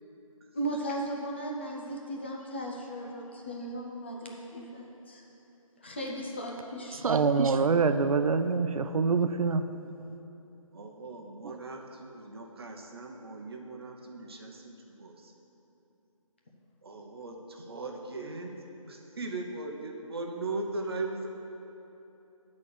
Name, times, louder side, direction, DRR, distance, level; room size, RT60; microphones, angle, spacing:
voice 1, 0.5-5.2 5.8-7.0, right 1 dB, 20° left, -2 dB, 0.5 m, -36 dB
voice 2, 6.9-9.6 11.4-11.6, right 4 dB, 80° right, 9 dB, 0.4 m, -25 dB
voice 3, 10.7-15.3 16.8-18.5 18.9-21.3, right 3 dB, 45° right, 2 dB, 0.9 m, -39 dB
8.4 x 4.2 x 6.6 m, 3.0 s
figure-of-eight pair, 160°, 18 cm